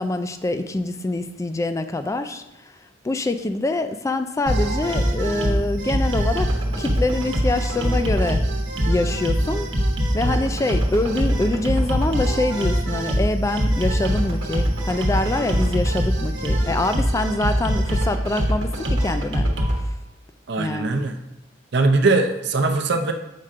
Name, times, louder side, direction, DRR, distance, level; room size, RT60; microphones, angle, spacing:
voice 1, 0.0-2.4 3.0-6.5 6.8-8.4 8.9-9.7 10.1-19.5 19.8-19.9 20.6-21.0, left 2 dB, 15° left, 9 dB, 0.3 m, -25 dB
sound 1, 4.5-19.8, equal, 90° right, 1.0 m, -23 dB
voice 2, 20.5-21.2 21.7-23.1, right 3 dB, 65° right, 5 dB, 0.6 m, -20 dB
7.4 x 5.5 x 2.5 m, 0.93 s
head